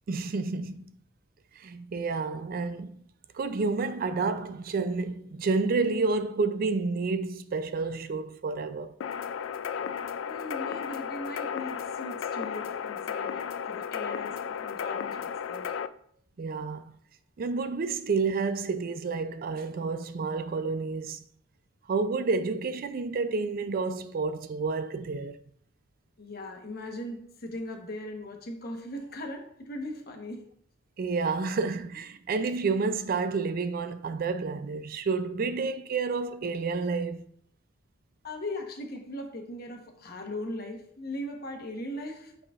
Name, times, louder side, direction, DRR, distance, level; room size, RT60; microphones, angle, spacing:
voice 1, 0.1-0.8 1.6-3.0 3.3-8.9 16.4-16.8 17.4-21.2 21.9-25.4 31.0-37.2, right 4 dB, 50° right, 0.4 m, -30 dB
sound 1, 9.0-15.9, left 7 dB, 75° left, 0.3 m, -34 dB
voice 2, 10.3-15.7 26.2-30.5 38.2-42.4, left 1 dB, 55° left, 1.0 m, -39 dB
8.5 x 4.8 x 2.4 m
head